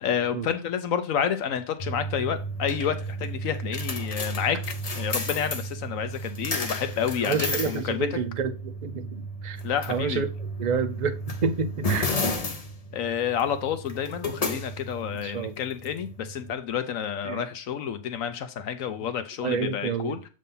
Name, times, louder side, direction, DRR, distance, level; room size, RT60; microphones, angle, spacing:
voice 1, 0.0-4.6 4.9-7.4 7.6-8.2 9.6-10.2 12.9-20.2, left 8 dB, 70° left, 1.0 m, -29 dB
sound 1, 1.8-16.5, equal, 35° left, 0.7 m, -33 dB
voice 2, 7.2-9.6 9.9-12.2 15.2-15.5 17.2-17.4 19.4-20.2, right 5 dB, 50° right, 0.5 m, -29 dB
7.5 x 2.8 x 5.4 m
omnidirectional pair, 1.5 m